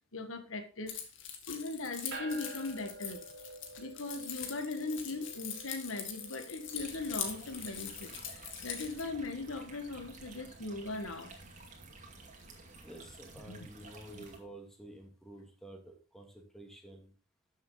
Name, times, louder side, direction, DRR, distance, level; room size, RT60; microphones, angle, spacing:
voice 1, 0.1-0.9 1.5-3.2 3.8-11.3 13.5-13.7 14.1-14.2, left 3 dB, 90° left, 1.5 m, -39 dB
Keys jangling, 0.9-9.0, left 8 dB, 65° left, 2.1 m, -43 dB
sound 1, 2.1-13.7, right 2 dB, 60° right, 3.0 m, -52 dB
sound 2, 6.8-14.4, right 3 dB, 40° right, 2.5 m, -53 dB
voice 2, 12.8-17.1, right 1 dB, ahead, 2.4 m, -50 dB
12.5 x 7.4 x 3.9 m
head